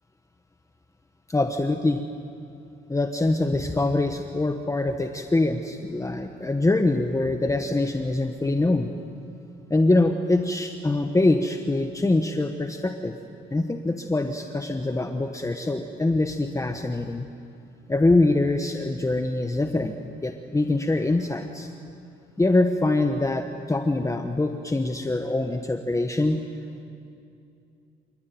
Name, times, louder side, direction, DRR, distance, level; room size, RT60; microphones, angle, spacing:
voice 1, 1.3-2.0 2.9-8.9 9.7-13.2 13.5-17.3 17.9-19.9 20.2-21.7 22.4-26.4, left 2 dB, 15° left, 5 dB, 1.3 m, -24 dB
28.5 x 17.5 x 9.4 m, 2.6 s
cardioid pair, 90°, 20 cm